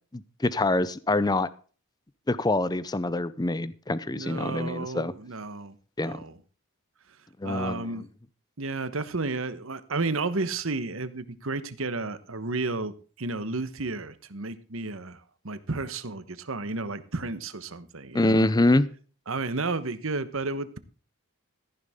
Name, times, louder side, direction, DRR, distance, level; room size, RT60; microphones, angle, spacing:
voice 1, 0.1-1.5 2.3-5.1 6.0-6.2 7.4-7.9 18.1-18.9, left 2 dB, 20° left, 16 dB, 0.5 m, -25 dB
voice 2, 4.1-5.7 6.0-6.4 7.4-8.1 8.6-18.4 19.3-20.8, right 3 dB, 60° right, 13 dB, 1.2 m, -32 dB
14.5 x 10.5 x 3.7 m, 0.38 s
head